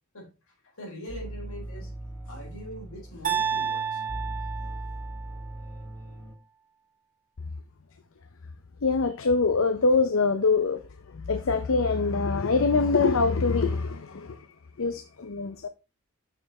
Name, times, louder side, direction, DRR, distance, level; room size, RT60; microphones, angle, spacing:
voice 1, 0.6-1.9 2.2-4.0, equal, 80° left, 4.1 m, -42 dB
sound 1, 1.1-6.3, right 1 dB, 10° left, 1.8 m, -39 dB
sound 2, 3.2-5.4, right 7 dB, 35° right, 1.9 m, -30 dB
voice 2, 8.8-10.8 11.1-14.4 14.8-15.7, left 4 dB, 65° left, 0.6 m, -24 dB
6.7 x 6.0 x 4.1 m
head